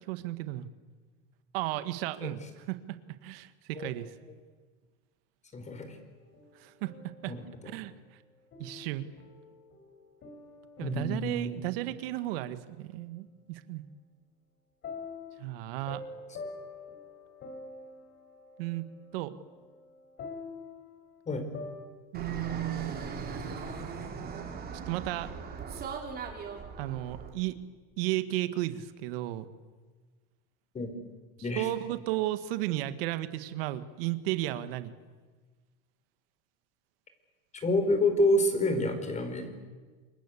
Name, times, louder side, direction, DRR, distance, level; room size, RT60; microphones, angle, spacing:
voice 1, 0.1-0.7 1.5-4.1 6.5-7.3 7.6-8.2 8.6-9.1 10.8-13.8 15.4-16.0 18.6-18.9 19.1-19.3 22.1-22.9 24.8-25.3 26.8-27.6 28.0-29.4 31.5-34.9, right 15 dB, 75° right, 11 dB, 1.7 m, -34 dB
voice 2, 5.5-6.0 7.3-7.8 10.8-11.6 21.3-21.5 30.7-30.9 31.4-31.7 37.5-39.5, left 1 dB, 25° left, 7 dB, 5.3 m, -28 dB
sound 1, 6.2-7.4 8.5-11.7 14.8-21.9, left 4 dB, 40° left, 4.8 m, -46 dB
Fixed-wing aircraft airplane, 22.1-27.3, right 5 dB, 30° right, 5.3 m, -39 dB
27.5 x 23.0 x 8.5 m, 1.4 s
supercardioid pair, 125°, 29 cm